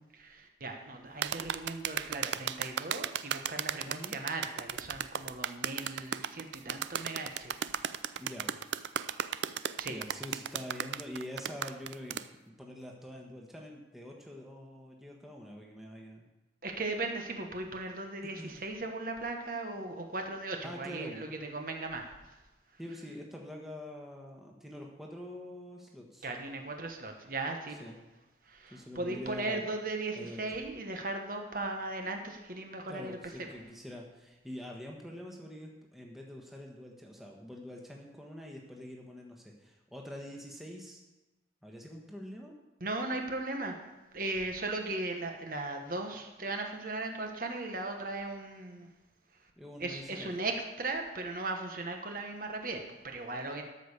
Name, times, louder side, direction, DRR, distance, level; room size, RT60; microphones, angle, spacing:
voice 1, 0.1-7.6 8.1-8.2 9.8-10.0 16.6-22.2 26.2-27.9 28.4-33.2 42.8-43.8 44.1-48.9 49.8-53.6, right 2 dB, 50° right, 3 dB, 1.2 m, -37 dB
sound 1, 1.2-12.3, right 9 dB, 80° right, 0.4 m, -35 dB
voice 2, 3.8-4.1 8.2-8.5 9.8-16.2 18.4-18.6 20.6-21.3 22.8-26.3 27.8-27.9 28.7-29.6 30.1-30.4 32.9-41.0 41.6-42.5 49.6-50.3, left 1 dB, ahead, -1 dB, 1.2 m, -45 dB
13.0 x 5.4 x 6.6 m, 1.1 s
head